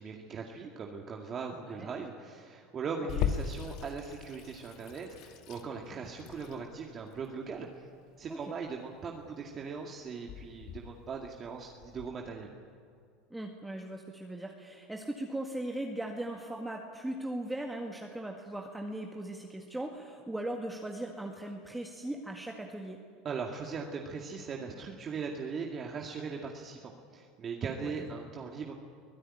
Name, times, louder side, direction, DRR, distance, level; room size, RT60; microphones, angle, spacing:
voice 1, 0.0-7.9 8.2-12.5 23.2-28.7, right 5 dB, 35° right, 1 dB, 2.0 m, -39 dB
Water tap faucet / Sink (filling or washing), 3.1-12.1, left 8 dB, 55° left, 1.8 m, -40 dB
voice 2, 13.3-23.0 27.8-28.0, right 1 dB, 5° right, 1 dB, 1.8 m, -38 dB
23.5 x 16.0 x 9.9 m, 2.3 s
supercardioid pair, 115°, 0 cm